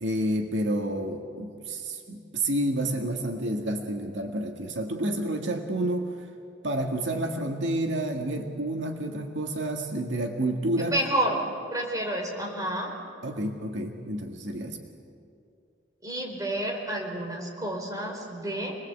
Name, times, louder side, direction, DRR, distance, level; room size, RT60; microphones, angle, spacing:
voice 1, 0.0-6.1 6.6-10.9 13.2-14.8, right 1 dB, 80° right, 2 dB, 2.0 m, -29 dB
voice 2, 10.8-11.4 11.7-12.9 16.0-18.8, right 1 dB, 20° right, -1 dB, 4.5 m, -30 dB
27.0 x 20.5 x 8.3 m, 2.4 s
head